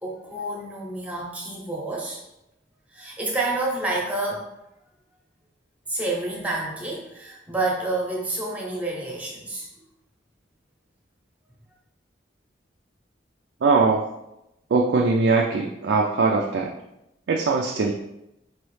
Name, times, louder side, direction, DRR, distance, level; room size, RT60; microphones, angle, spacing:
voice 1, 0.0-2.2 2.9-4.5 5.9-9.7, right 2 dB, 10° right, -3 dB, 0.7 m, -29 dB
voice 2, 13.6-14.1 14.7-16.7 17.3-17.9, right 4 dB, 70° right, 1 dB, 0.4 m, -21 dB
4.6 x 3.0 x 3.1 m, 0.89 s
head